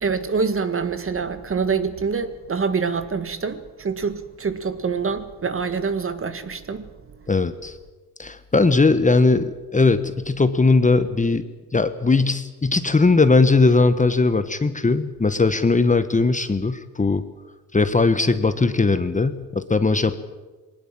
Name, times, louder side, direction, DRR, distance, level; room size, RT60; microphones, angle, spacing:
voice 1, 0.0-7.2, right 5 dB, 30° right, 1.7 m, -26 dB
voice 2, 7.3-7.7 8.2-11.4 11.7-17.2 17.7-20.2, left 3 dB, 20° left, 1.3 m, -19 dB
20.5 x 19.5 x 7.6 m
supercardioid pair, 85°, 41 cm